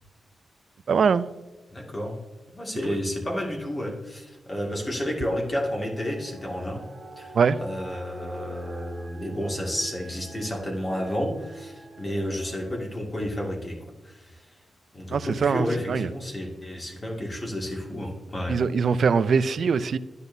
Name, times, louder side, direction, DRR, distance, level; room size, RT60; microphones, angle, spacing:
voice 1, 0.9-1.3 7.3-7.6 15.1-16.1 18.5-20.0, right 5 dB, 60° right, 15 dB, 0.4 m, -22 dB
voice 2, 1.7-2.2 2.5-6.8 7.2-13.8 14.0-14.4 14.9-18.6, equal, 30° left, -1 dB, 2.1 m, -31 dB
sound 1, 5.5-12.8, right 2 dB, 25° right, 1.2 m, -45 dB
11.0 x 9.8 x 2.7 m, 1.2 s
cardioid pair, 100°, 0 cm